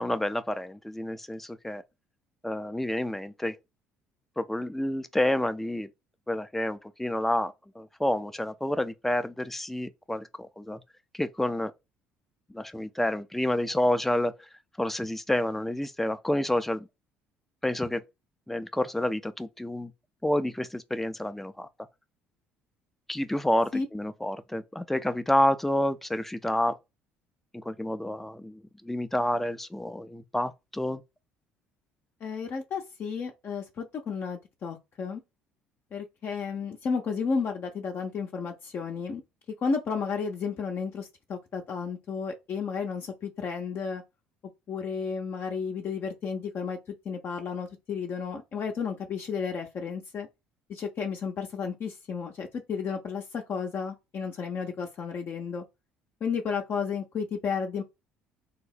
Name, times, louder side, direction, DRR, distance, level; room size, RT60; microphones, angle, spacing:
voice 1, 0.0-1.8 2.4-3.6 4.4-5.9 6.3-10.8 11.1-11.7 12.5-14.4 14.8-16.9 17.6-18.0 18.5-19.9 20.2-21.7 23.1-26.8 27.5-31.0, left 1 dB, 5° left, 0.4 m, -29 dB
voice 2, 32.2-35.2 35.9-39.2 39.6-44.0 44.7-46.8 47.0-50.3 50.7-55.6 56.2-57.8, left 5 dB, 50° left, 0.6 m, -32 dB
2.8 x 2.0 x 3.9 m
hypercardioid pair, 60°, 5 cm